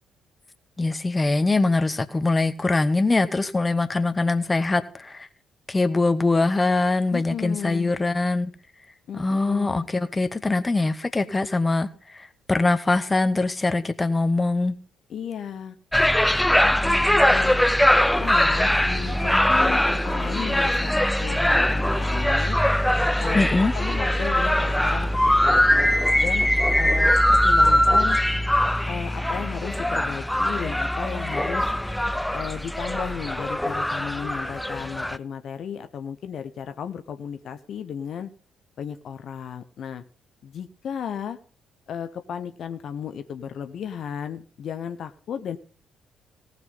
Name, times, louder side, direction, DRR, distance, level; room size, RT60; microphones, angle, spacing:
voice 1, 0.8-5.3 5.7-8.5 9.1-14.7 23.3-23.7, left 3 dB, 20° left, 13 dB, 0.9 m, -23 dB
voice 2, 7.1-7.9 9.1-9.9 15.1-15.8 16.6-17.7 18.0-22.6 23.2-25.6 26.2-26.5 26.8-28.2 28.9-31.7 32.3-38.3 38.8-40.0 40.4-41.4 41.9-45.6, left 8 dB, 50° left, 10 dB, 0.7 m, -34 dB
sound 1, 15.9-35.2, left 1 dB, 5° left, 0.5 m, -21 dB
18.0 x 6.1 x 5.5 m, 0.39 s
figure-of-eight pair, 45°, 0 cm